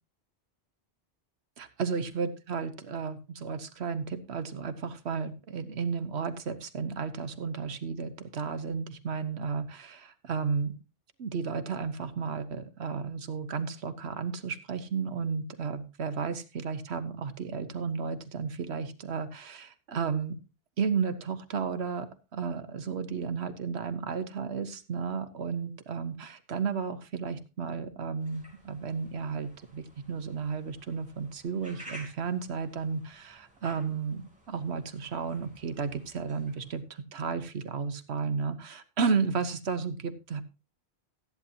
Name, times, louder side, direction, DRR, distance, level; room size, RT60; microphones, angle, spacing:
voice 1, 1.6-10.7 11.2-20.4 20.8-22.1 22.3-40.4, right 5 dB, 85° right, 10 dB, 1.3 m, -33 dB
sound 1, 28.2-36.8, right 1 dB, 5° right, 3.1 m, -53 dB
14.0 x 10.5 x 2.8 m, 0.29 s
omnidirectional pair, 1.1 m